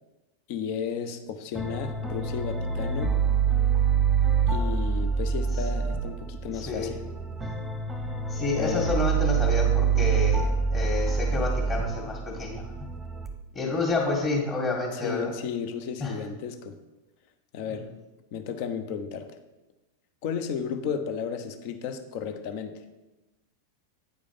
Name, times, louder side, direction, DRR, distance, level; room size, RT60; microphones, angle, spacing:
voice 1, 0.5-3.2 4.5-7.0 8.5-8.9 14.9-16.8 17.5-17.9 18.3-19.4 20.2-22.8, left 7 dB, 45° left, 8 dB, 0.8 m, -33 dB
sound 1, 1.6-13.3, right 6 dB, 10° right, 0.9 m, -26 dB
voice 2, 6.5-6.9 7.4-7.5 8.3-12.7 13.5-15.3 16.0-16.2 17.6-17.8, left 3 dB, 20° left, -1 dB, 1.9 m, -29 dB
9.0 x 5.0 x 5.3 m, 1.0 s
figure-of-eight pair, 90°, 0 cm